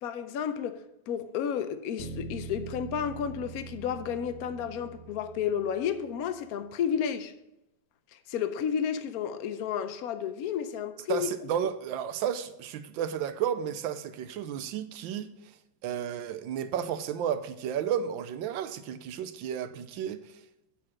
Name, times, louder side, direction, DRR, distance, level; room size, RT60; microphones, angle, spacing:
voice 1, 0.0-7.3 8.1-11.3, left 8 dB, 75° left, 0.8 m, -32 dB
Bass guitar, 2.0-6.3, right 5 dB, 30° right, 1.9 m, -43 dB
voice 2, 11.1-15.3 15.8-20.2, right 9 dB, 75° right, 1.3 m, -32 dB
8.6 x 4.8 x 5.9 m
omnidirectional pair, 2.3 m